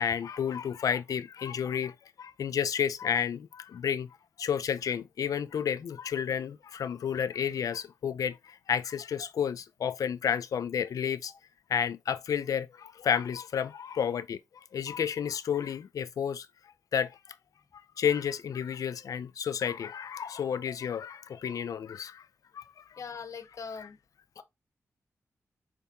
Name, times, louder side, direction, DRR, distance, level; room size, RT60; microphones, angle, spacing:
voice 1, 0.0-4.1 4.4-11.3 11.7-16.5 16.9-17.2 18.0-22.2 22.5-23.0 23.8-23.9, left 8 dB, 85° left, 0.4 m, -31 dB
voice 2, 23.0-24.0 24.4-24.5, left 5 dB, 65° left, 0.9 m, -41 dB
5.1 x 3.5 x 2.8 m
cardioid pair, 70°, 6 cm